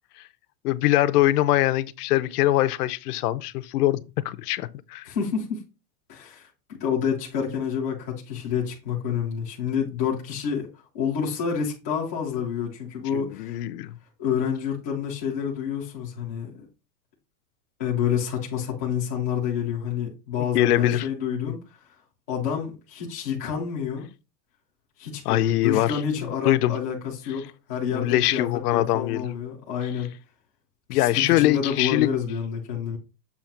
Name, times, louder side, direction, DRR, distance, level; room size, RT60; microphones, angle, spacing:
voice 1, 0.6-5.1 13.1-14.0 20.5-21.1 21.5-21.6 25.3-25.9 26.4-26.7 27.9-29.3 30.9-32.1, left 15 dB, 70° left, 0.7 m, -23 dB
voice 2, 5.0-5.6 6.1-6.5 6.8-10.7 10.9-13.6 14.2-16.6 17.8-21.6 22.3-24.1 25.0-30.1 30.9-33.0, left 7 dB, 10° left, 0.3 m, -28 dB
7.1 x 2.8 x 5.7 m
supercardioid pair, 170°, 49 cm